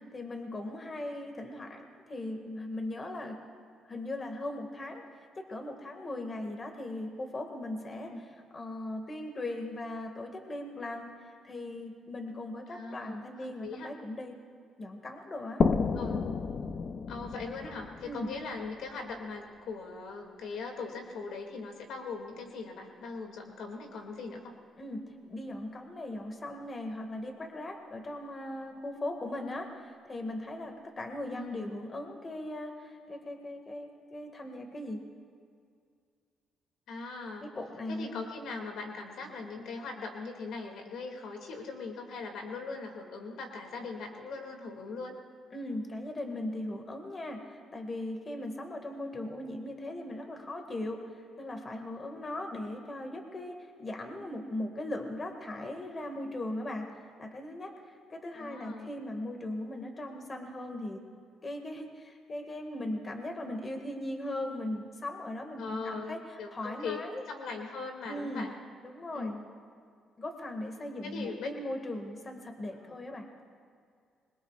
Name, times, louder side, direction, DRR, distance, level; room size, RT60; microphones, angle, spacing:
voice 1, 0.1-3.4 3.8-5.0 5.4-11.1 11.4-14.4 14.8-15.6 18.0-18.3 24.8-35.0 37.4-38.3 45.5-61.0 61.4-67.2 68.1-68.5 68.8-69.4 70.2-73.3, left 1 dB, 35° left, 4 dB, 1.9 m, -39 dB
voice 2, 12.7-13.9 15.9-16.2 17.1-24.5 31.3-31.8 36.9-37.5 37.9-45.2 58.3-58.9 65.6-67.0 67.3-68.5 69.1-69.4 71.0-71.5 72.8-72.9, left 4 dB, 80° left, 2 dB, 2.4 m, -40 dB
sound 1, 15.6-19.1, left 5 dB, 50° left, 0.7 m, -31 dB
25.5 x 22.0 x 2.5 m, 2.2 s
cardioid pair, 90°, 0 cm